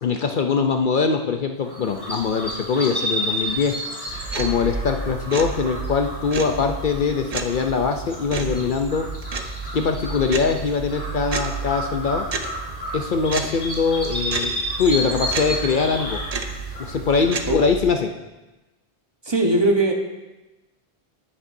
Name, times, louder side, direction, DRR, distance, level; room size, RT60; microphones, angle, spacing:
voice 1, 0.0-3.7 4.4-9.1 9.7-12.3 12.9-16.2 16.8-18.1, left 5 dB, 60° left, 5 dB, 0.7 m, -22 dB
sound 1, 1.6-17.7, equal, 20° left, 2.3 m, -32 dB
sound 2, 4.1-17.9, right 4 dB, 45° right, 0.7 m, -32 dB
voice 2, 19.3-19.9, right 2 dB, 25° right, 1 dB, 1.0 m, -19 dB
9.9 x 9.8 x 2.6 m, 1.1 s
omnidirectional pair, 1.0 m